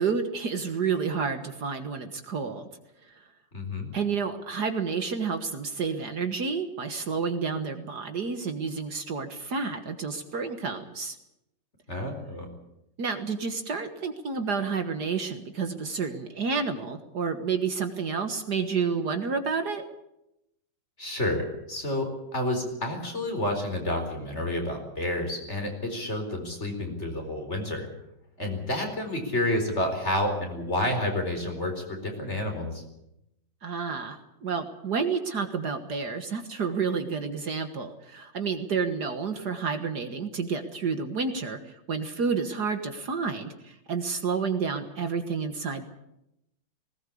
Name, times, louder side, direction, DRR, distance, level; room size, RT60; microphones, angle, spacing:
voice 1, 0.0-2.7 3.2-3.3 3.9-11.2 13.0-19.8 33.6-45.8, right 5 dB, 55° right, 7 dB, 2.0 m, -30 dB
voice 2, 3.5-4.0 11.9-12.5 21.0-27.9 28.4-32.8, left 1 dB, 35° left, 3 dB, 4.7 m, -30 dB
20.0 x 18.5 x 8.5 m, 0.85 s
omnidirectional pair, 2.1 m